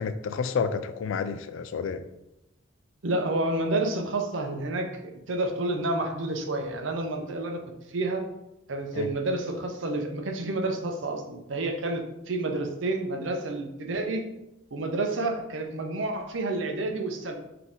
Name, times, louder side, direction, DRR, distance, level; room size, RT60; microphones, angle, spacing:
voice 1, 0.0-2.1 8.9-9.1, left 5 dB, 80° left, 11 dB, 0.3 m, -30 dB
voice 2, 3.0-4.9 5.3-7.6 7.9-8.2 8.7-14.2 14.7-17.3, right 2 dB, 75° right, 4 dB, 0.6 m, -29 dB
4.1 x 2.8 x 3.6 m, 0.91 s
head